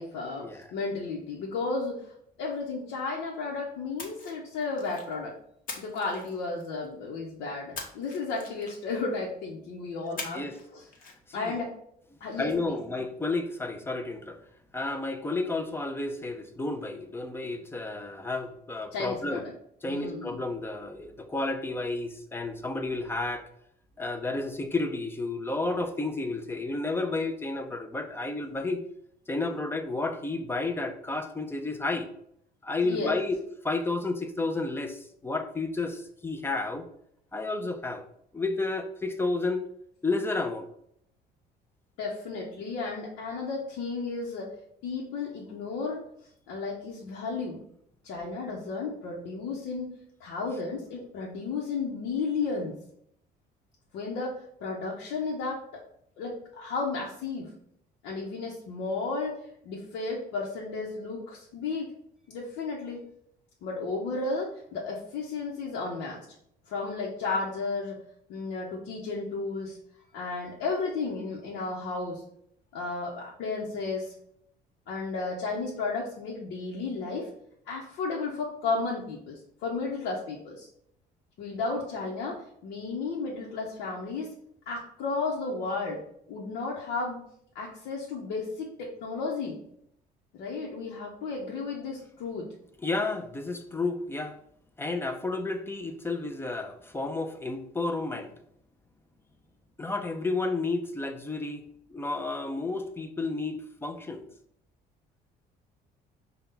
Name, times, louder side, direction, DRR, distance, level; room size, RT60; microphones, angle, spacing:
voice 1, 0.0-2.0 2.4-5.3 5.8-10.4 10.7-10.8 11.3-11.7 12.2-12.8 18.9-19.5 19.9-20.4 32.8-33.2 42.0-44.5 44.8-46.0 46.5-47.6 48.0-49.9 50.2-52.7 53.9-55.6 56.2-57.5 58.0-61.9 62.3-63.0 63.6-66.2 66.7-68.0 68.3-69.8 70.1-72.2 72.7-74.1 74.9-77.3 77.7-80.7 81.4-84.3 84.7-86.0 86.3-87.2 87.5-89.6 90.3-92.5, left 4 dB, 85° left, -4 dB, 0.9 m, -33 dB
Splash splatter, 4.0-5.1 5.7-6.9 7.8-9.0 10.2-10.7 10.9-11.1, left 4 dB, 55° left, 1.0 m, -42 dB
voice 2, 12.3-14.4 14.7-19.4 19.8-23.5 24.0-28.8 29.3-32.1 32.6-33.4 33.6-36.9 37.3-38.0 38.3-39.7 40.0-40.7 92.8-94.4 94.8-98.3 99.8-101.6 101.9-104.2, left 3 dB, 15° left, 6 dB, 0.5 m, -31 dB
5.4 x 2.3 x 3.7 m, 0.71 s
cardioid pair, 110°, 17 cm